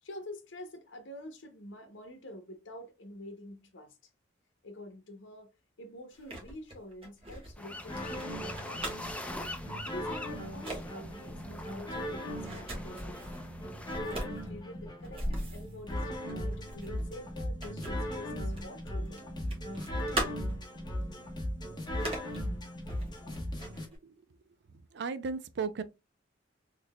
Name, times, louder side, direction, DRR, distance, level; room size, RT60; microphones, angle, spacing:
voice 1, 0.0-4.0 4.6-5.5 5.8-9.1 9.8-13.3 14.0-19.3, left 1 dB, 80° left, 0.7 m, -47 dB
sound 1, 6.1-9.2 9.9-10.1 10.4-10.8 11.2-13.4 13.9-18.8 19.0-20.7 21.2-21.3 21.8-22.4 22.9-24.0, right 1 dB, 30° right, 1.3 m, -40 dB
sound 2, 7.6-14.0, left 1 dB, 5° left, 0.5 m, -43 dB
sound 3, 7.9-23.9, equal, 25° left, 1.1 m, -38 dB
voice 2, 24.9-25.8, right 5 dB, 65° right, 0.4 m, -35 dB
3.7 x 3.1 x 2.2 m
head